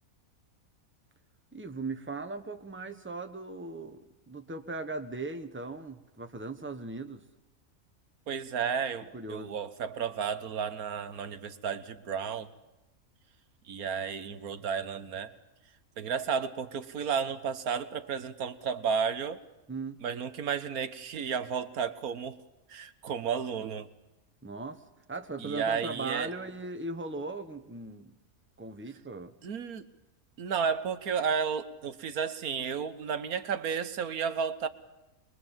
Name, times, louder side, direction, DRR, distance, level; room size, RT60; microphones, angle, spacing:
voice 1, 1.5-7.2 9.1-9.5 19.7-20.0 24.4-24.8 25.1-28.1 28.6-29.3, right 3 dB, 10° right, 7 dB, 1.1 m, -38 dB
voice 2, 8.3-12.5 13.7-15.3 16.0-19.4 20.0-22.4 22.7-23.9 25.4-26.3 29.4-29.8 30.4-34.7, right 6 dB, 85° right, 11 dB, 1.6 m, -32 dB
23.0 x 23.0 x 7.4 m, 0.97 s
omnidirectional pair, 1.5 m